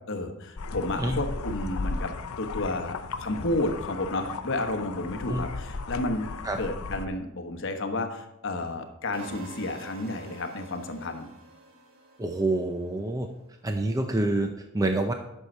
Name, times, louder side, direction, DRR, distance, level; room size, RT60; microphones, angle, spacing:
voice 1, 0.1-11.3, left 2 dB, 60° left, 5 dB, 1.1 m, -31 dB
sound 1, 0.6-7.1, left 4 dB, 80° left, 0.6 m, -36 dB
sound 2, 9.1-13.2, right 1 dB, 65° right, 1.5 m, -48 dB
voice 2, 12.2-13.3 13.6-15.1, right 2 dB, 15° right, 5 dB, 0.5 m, -27 dB
11.5 x 6.4 x 4.4 m, 0.91 s
head